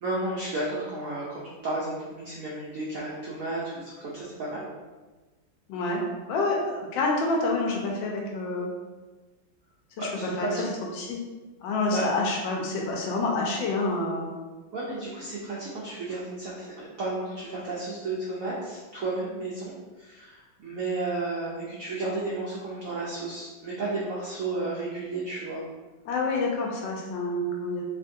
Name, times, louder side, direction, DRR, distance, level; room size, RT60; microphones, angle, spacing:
voice 1, 0.0-4.6 10.0-10.6 11.9-12.1 14.7-19.7 20.0-25.6, right 2 dB, 85° right, -6 dB, 0.7 m, -33 dB
voice 2, 5.7-6.0 6.3-8.7 10.0-11.2 11.6-14.3 26.0-27.8, left 2 dB, 75° left, -1 dB, 1.4 m, -28 dB
3.5 x 2.5 x 2.6 m, 1.3 s
omnidirectional pair, 2.1 m